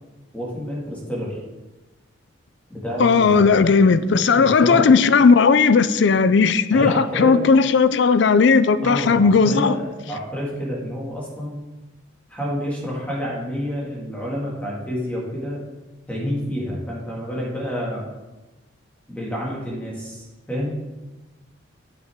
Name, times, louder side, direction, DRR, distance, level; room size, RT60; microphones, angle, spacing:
voice 1, 0.3-1.4 2.7-3.6 4.3-5.0 6.7-7.4 8.8-11.6 12.3-15.7 16.1-18.0 19.1-20.8, equal, 5° left, 2.0 m, -28 dB
voice 2, 3.0-9.7, left 5 dB, 60° left, 0.4 m, -16 dB
9.0 x 7.9 x 3.6 m
head